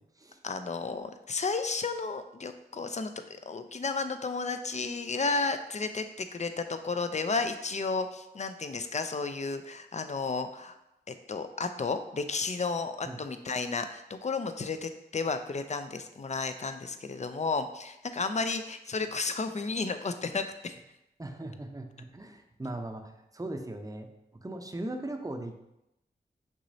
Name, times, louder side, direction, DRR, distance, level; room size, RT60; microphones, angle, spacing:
voice 1, 0.4-10.8 11.1-20.7, left 4 dB, 40° left, 9 dB, 0.5 m, -33 dB
voice 2, 21.2-25.6, right 1 dB, 20° right, 4 dB, 0.7 m, -39 dB
6.1 x 2.9 x 2.7 m, 0.88 s
cardioid pair, 40°, 18 cm